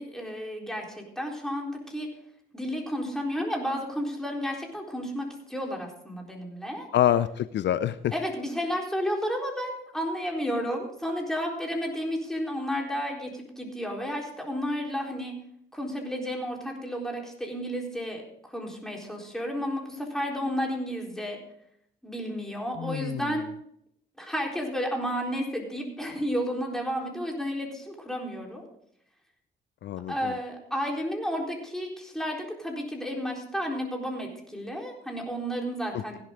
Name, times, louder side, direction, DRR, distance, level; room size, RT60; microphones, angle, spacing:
voice 1, 0.0-2.1 2.5-6.9 8.1-15.4 15.7-21.4 22.0-23.4 24.2-28.7 30.1-36.2, equal, ahead, 0 dB, 4.1 m, -32 dB
voice 2, 6.9-8.1 22.8-23.2 29.8-30.3 35.9-36.2, left 11 dB, 65° left, 14 dB, 0.5 m, -26 dB
16.0 x 11.0 x 3.8 m, 0.71 s
cardioid pair, 90°, 20 cm